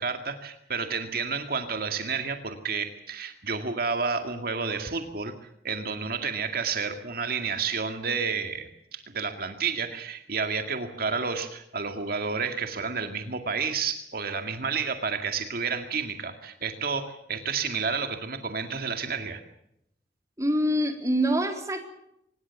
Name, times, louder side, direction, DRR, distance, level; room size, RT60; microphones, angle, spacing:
voice 1, 0.0-5.3 5.6-19.4, right 5 dB, 55° right, 6 dB, 2.1 m, -30 dB
voice 2, 20.4-21.9, equal, 20° right, 5 dB, 3.6 m, -25 dB
25.5 x 20.0 x 7.2 m, 0.77 s
head